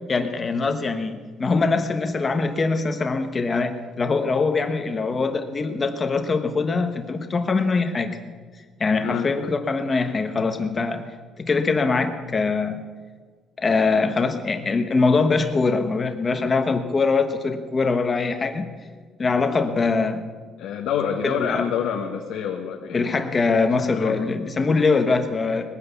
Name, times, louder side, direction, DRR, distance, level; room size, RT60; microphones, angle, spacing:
voice 1, 0.1-8.2 8.8-11.0 11.4-12.8 13.6-18.6 19.2-20.2 21.2-21.7 22.9-25.7, left 4 dB, 20° left, 7 dB, 1.2 m, -23 dB
voice 2, 20.6-23.1 23.9-24.2, left 8 dB, 75° left, 1 dB, 1.3 m, -27 dB
20.0 x 9.6 x 7.1 m, 1.5 s
cardioid pair, 175°, 0 cm